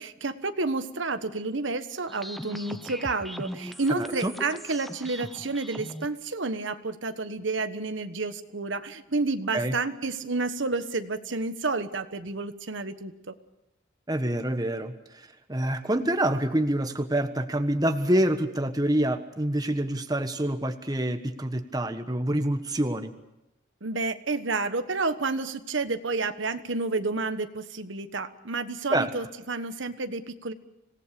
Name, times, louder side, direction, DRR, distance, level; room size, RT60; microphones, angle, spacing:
voice 1, 0.0-13.3 23.8-30.5, right 3 dB, 70° right, 9 dB, 1.4 m, -30 dB
sound 1, 2.1-6.1, equal, ahead, 0.9 m, -39 dB
voice 2, 4.0-4.3 9.5-9.7 14.1-23.1 28.9-29.1, right 1 dB, 20° right, 7 dB, 1.4 m, -27 dB
26.5 x 18.0 x 6.9 m, 0.94 s
head